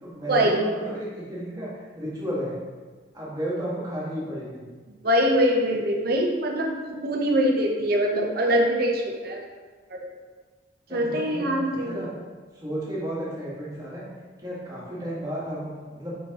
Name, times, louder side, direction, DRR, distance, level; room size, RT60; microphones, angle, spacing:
voice 1, 0.0-2.6 3.1-4.7 10.9-12.1 12.5-14.0 14.4-16.2, right 1 dB, 20° right, -8 dB, 1.7 m, -33 dB
voice 2, 5.0-9.4 10.0-10.1 10.9-12.0, equal, 50° right, 1 dB, 0.9 m, -23 dB
6.0 x 5.7 x 3.0 m, 1.4 s
head